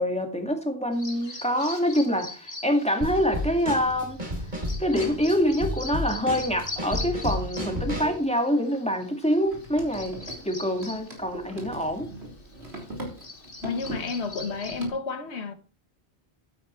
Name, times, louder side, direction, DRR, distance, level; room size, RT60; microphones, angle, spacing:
voice 1, 0.0-4.2 4.8-12.1, equal, 5° left, 2.0 m, -26 dB
Bird vocalization bird call bird song, 0.9-14.9, left 3 dB, 55° left, 2.2 m, -43 dB
Drum kit / Snare drum, 3.0-8.2, left 1 dB, 45° right, 3.7 m, -32 dB
sound 1, 9.4-14.9, right 1 dB, 75° right, 3.9 m, -40 dB
voice 2, 13.6-15.5, left 4 dB, 85° left, 1.5 m, -31 dB
12.5 x 9.0 x 3.1 m
omnidirectional pair, 1.1 m